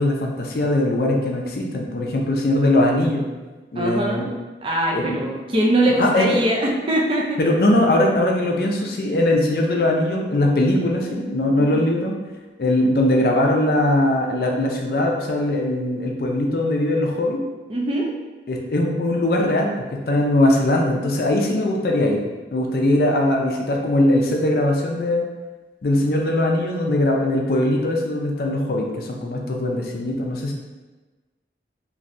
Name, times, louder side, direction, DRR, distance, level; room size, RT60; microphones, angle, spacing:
voice 1, 0.0-3.3 3.7-4.3 4.9-5.2 6.0-6.4 7.4-12.2 12.6-17.4 18.5-22.2 22.5-25.2 25.8-30.5, left 1 dB, 55° left, 0 dB, 0.4 m, -20 dB
voice 2, 3.8-4.3 4.6-7.4 11.6-11.9 17.7-18.1, right 1 dB, 30° right, -1 dB, 0.4 m, -22 dB
3.1 x 2.6 x 2.5 m, 1.2 s
head